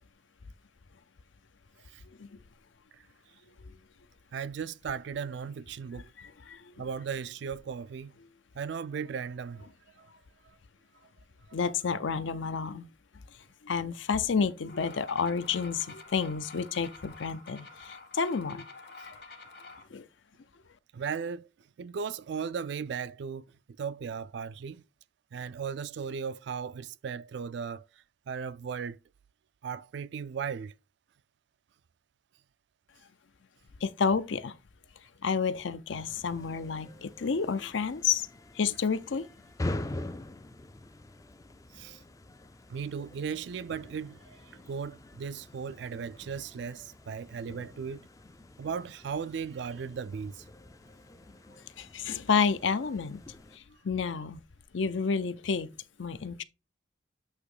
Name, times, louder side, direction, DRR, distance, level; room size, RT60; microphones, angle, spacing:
voice 1, 4.3-6.1 6.8-8.2 8.6-9.7 10.0-10.1 20.9-21.5 21.8-23.5 23.8-24.8 25.3-27.9 28.3-29.0 29.6-30.7 41.7-42.0 42.7-44.4 44.7-48.1 48.6-50.4, right 6 dB, 60° right, 0.3 m, -36 dB
voice 2, 6.2-6.7 11.5-12.9 13.6-18.7 19.9-20.0 33.8-34.5 35.2-38.3 38.5-39.3 51.8-53.2 53.5-54.4 54.7-55.7 56.0-56.4, left 5 dB, 70° left, 0.6 m, -30 dB
sound 1, 14.7-19.8, left 3 dB, 55° left, 1.5 m, -49 dB
sound 2, 35.9-53.6, left 1 dB, 15° left, 0.3 m, -44 dB
8.3 x 2.9 x 4.8 m
head